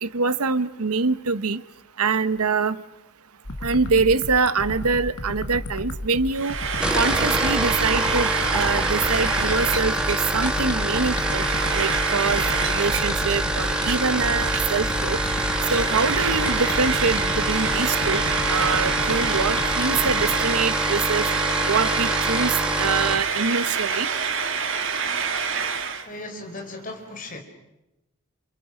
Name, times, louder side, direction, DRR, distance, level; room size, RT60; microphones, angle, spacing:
voice 1, 0.0-1.6 2.0-2.8 3.6-6.5 6.9-11.4 11.7-12.4 12.7-15.2 15.7-18.2 18.5-21.2 21.7-24.1, right 4 dB, 90° right, 14 dB, 1.0 m, -24 dB
sound 1, 3.4-20.4, left 1 dB, 85° left, 2.0 m, -33 dB
Frying (food), 6.3-26.1, right 6 dB, 55° right, 1.8 m, -27 dB
sound 2, 6.7-23.2, right 1 dB, 5° right, 1.5 m, -26 dB
voice 2, 26.0-27.4, left 2 dB, 35° left, 4 dB, 4.3 m, -36 dB
28.5 x 28.0 x 6.5 m, 0.94 s
head